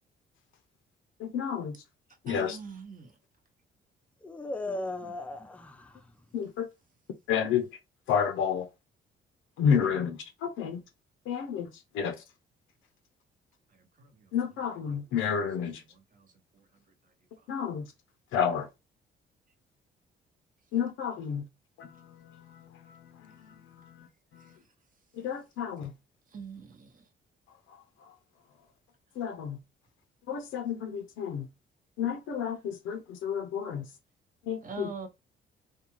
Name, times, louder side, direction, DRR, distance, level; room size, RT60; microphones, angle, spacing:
voice 1, 1.2-1.8 2.2-2.6 6.3-6.7 7.3-7.7 8.1-8.7 9.6-10.8 11.3-12.2 14.3-15.8 17.5-17.9 18.3-18.7 20.7-21.5 21.8-24.4 25.1-25.9 27.5-28.2 29.2-29.6 30.3-31.5 32.0-33.9 34.5-34.9, left 7 dB, 85° left, 0.5 m, -31 dB
voice 2, 2.3-3.1 5.0-5.1 13.7-14.3 16.1-16.7 26.3-27.1 34.6-35.1, right 4 dB, 45° right, 0.8 m, -43 dB
voice 3, 4.2-6.3, left 2 dB, 5° left, 0.4 m, -37 dB
2.4 x 2.2 x 3.0 m
cardioid pair, 90°, 20 cm